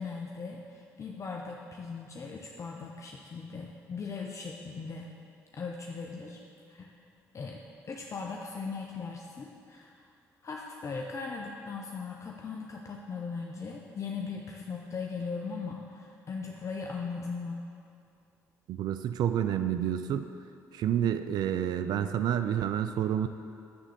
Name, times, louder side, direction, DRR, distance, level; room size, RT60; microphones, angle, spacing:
voice 1, 0.0-5.1 5.5-6.4 6.7-6.9 7.3-10.1 10.4-17.7, left 4 dB, 40° left, 0 dB, 0.7 m, -39 dB
voice 2, 18.7-20.3 20.7-23.3, right 9 dB, 65° right, 10 dB, 0.4 m, -29 dB
9.6 x 3.7 x 6.7 m, 2.5 s
hypercardioid pair, 55°, 8 cm